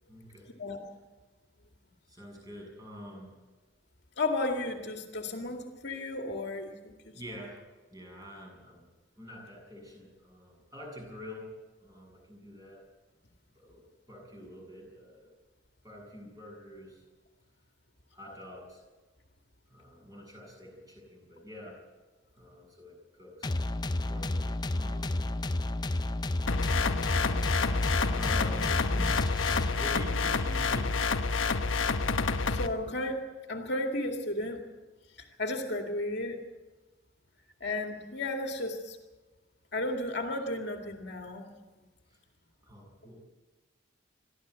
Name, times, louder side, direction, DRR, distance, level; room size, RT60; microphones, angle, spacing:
voice 1, 0.1-0.5 2.1-3.4 7.1-7.6 7.9-8.9 9.2-11.5 11.8-12.9 13.5-15.3 15.8-17.0 18.1-18.8 19.7-21.8 22.3-23.5 24.1-25.3 28.1-31.0 42.1-42.2 42.6-43.2, equal, 20° right, 0 dB, 7.5 m, -46 dB
voice 2, 4.2-7.1 32.5-34.6 35.2-36.4 37.6-39.0 39.7-41.5, left 2 dB, 55° left, 3 dB, 2.3 m, -34 dB
sound 1, 23.4-30.1, left 1 dB, 20° left, 0.6 m, -32 dB
sound 2, 26.5-32.7, left 4 dB, 80° left, 1.0 m, -28 dB
23.0 x 14.5 x 8.2 m, 1.2 s
head